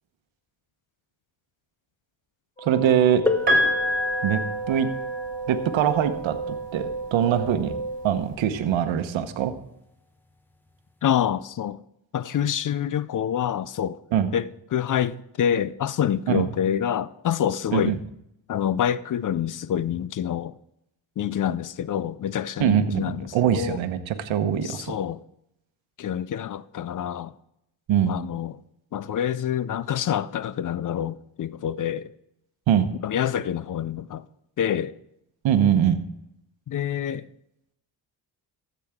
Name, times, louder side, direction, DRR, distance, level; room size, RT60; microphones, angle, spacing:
sound 1, 2.6-8.2, right 4 dB, 20° left, 3.8 m, -33 dB
voice 1, 2.6-3.2 4.2-4.4 4.7-4.9 5.5-7.7 8.0-9.5 14.1-14.3 16.3-16.5 17.7-18.0 22.6-24.9 27.9-28.1 32.7-32.9 35.4-36.0, right 9 dB, 90° right, 1.0 m, -22 dB
sound 2, 3.3-8.7 9.7-9.8 10.7-10.9, left 4 dB, 5° left, 0.9 m, -34 dB
Piano, 3.5-5.5 6.7-6.8, left 1 dB, 25° right, 4.8 m, -25 dB
voice 2, 11.0-11.8 12.1-14.0 14.3-17.9 18.5-20.5 21.2-23.8 24.6-25.2 26.0-27.3 28.1-28.6 28.9-32.1 33.0-34.3 34.6-34.9 36.7-37.2, left 9 dB, 45° left, 0.5 m, -27 dB
13.5 x 8.1 x 3.6 m
cardioid pair, 90°, 45 cm